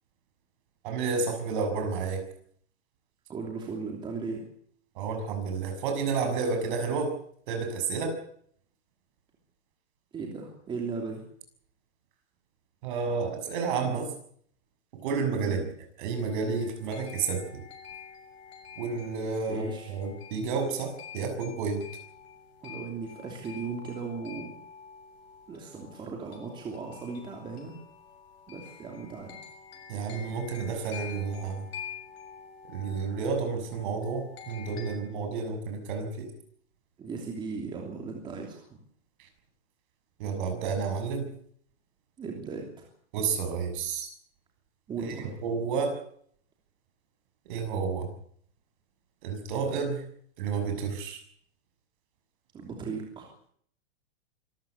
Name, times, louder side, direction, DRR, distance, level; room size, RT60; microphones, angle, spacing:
voice 1, 0.8-2.2 4.9-7.1 7.5-8.2 12.8-14.1 14.9-15.6 16.0-17.6 18.8-21.9 29.9-31.7 32.7-36.3 39.2-39.3 40.2-41.3 43.1-44.1 45.0-46.0 47.4-48.1 49.2-50.0 50.4-51.2, right 5 dB, 45° right, 6 dB, 6.8 m, -31 dB
voice 2, 3.3-4.4 10.1-11.2 15.4-15.6 19.5-19.9 22.6-24.6 25.5-27.7 28.5-29.4 37.0-38.7 42.2-42.9 44.9-45.3 52.5-53.3, right 4 dB, 15° right, 1 dB, 3.0 m, -37 dB
sound 1, 16.1-34.9, left 7 dB, 65° left, 7.1 m, -47 dB
25.0 x 14.5 x 8.3 m, 0.64 s
supercardioid pair, 165°, 34 cm